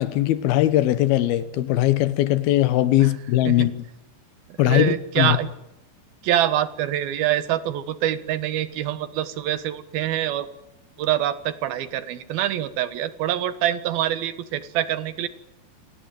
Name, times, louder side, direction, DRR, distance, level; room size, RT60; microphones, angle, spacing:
voice 1, 0.0-3.7 4.6-5.4, left 14 dB, 90° left, 3.1 m, -20 dB
voice 2, 4.5-5.5 6.2-10.5 11.0-15.3, right 12 dB, 85° right, 3.2 m, -25 dB
28.0 x 18.5 x 9.3 m
omnidirectional pair, 4.2 m